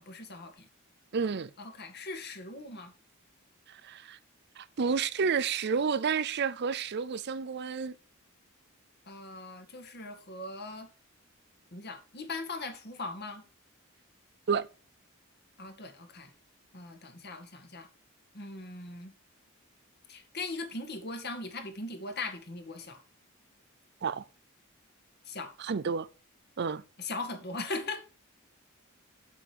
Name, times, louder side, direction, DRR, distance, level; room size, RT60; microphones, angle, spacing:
voice 1, 0.1-0.7 1.6-2.9 9.1-10.9 11.7-13.4 15.6-16.3 16.7-17.9 18.3-19.1 20.1-23.0 25.3-25.5 27.0-28.0, left 3 dB, 50° left, 2.2 m, -39 dB
voice 2, 1.1-1.5 3.7-4.2 4.6-7.9 14.5-14.7 24.0-24.2 25.6-26.1 26.6-26.8, right 5 dB, 50° right, 0.5 m, -30 dB
8.2 x 8.0 x 4.7 m
head